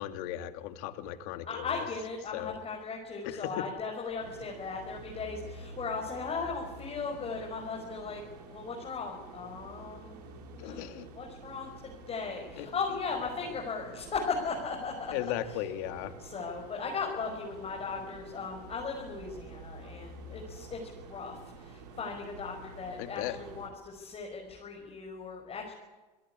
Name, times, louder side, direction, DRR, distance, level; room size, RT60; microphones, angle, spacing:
voice 1, 0.0-1.6 2.3-2.6 3.2-3.5 10.6-11.1 12.6-12.7 15.1-16.1 23.0-23.4, left 13 dB, 60° left, 9 dB, 2.4 m, -36 dB
voice 2, 1.5-8.2 8.5-15.1 15.4-15.6 16.2-25.7, left 4 dB, 30° left, 0 dB, 5.8 m, -37 dB
sound 1, 4.2-23.7, right 3 dB, 75° right, 5.1 m, -49 dB
28.0 x 17.5 x 9.9 m, 1.2 s
hypercardioid pair, 100°, 21 cm